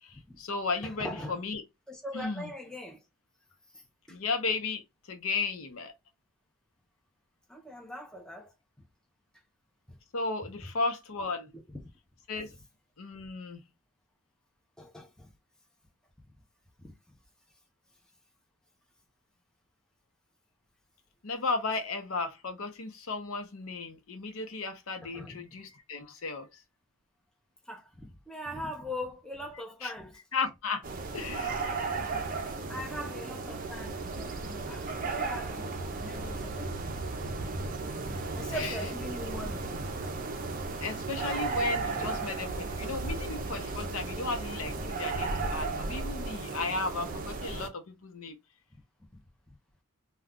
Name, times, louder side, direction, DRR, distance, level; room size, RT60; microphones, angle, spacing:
voice 1, 0.0-1.6 2.1-2.5 4.1-4.8 5.1-5.9 10.1-11.5 12.3-12.5 13.0-13.6 21.2-26.6 29.8-29.9 30.3-30.9 31.1-31.8 38.5-38.8 40.8-48.4, left 4 dB, 75° left, 0.7 m, -34 dB
voice 2, 0.8-1.4 1.9-3.0 4.1-4.2 7.5-8.5 9.9-10.0 11.5-11.8 14.8-15.3 16.8-16.9 25.1-25.4 27.7-30.2 32.0-32.3 32.6-37.0 38.4-39.7 42.0-42.1 43.1-43.2 44.8-44.9 45.2-45.3 49.5-49.6, left 1 dB, 5° left, 0.6 m, -41 dB
sound 1, 30.8-47.7, right 3 dB, 40° right, 0.5 m, -35 dB
2.3 x 2.2 x 3.6 m
head